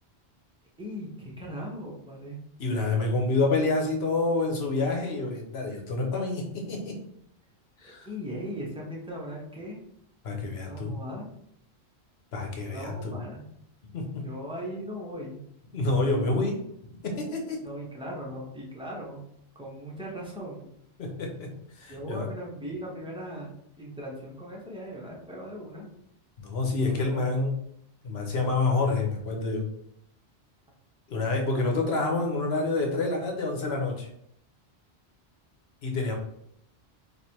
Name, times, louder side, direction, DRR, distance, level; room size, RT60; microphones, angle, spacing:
voice 1, 0.8-2.4 8.1-9.8 10.6-11.3 12.7-13.5 14.2-15.4 17.6-19.2 19.5-20.7 21.9-25.9 26.8-27.3, equal, 5° right, -4 dB, 0.9 m, -38 dB
voice 2, 2.6-7.0 7.8-8.1 10.2-10.9 12.3-13.2 13.9-14.3 15.7-16.6 17.0-17.6 21.0-21.5 21.8-22.3 26.4-27.6 28.0-29.7 31.1-34.1 35.8-36.2, left 3 dB, 75° left, 1 dB, 1.1 m, -28 dB
3.3 x 2.5 x 4.3 m, 0.72 s
omnidirectional pair, 1.1 m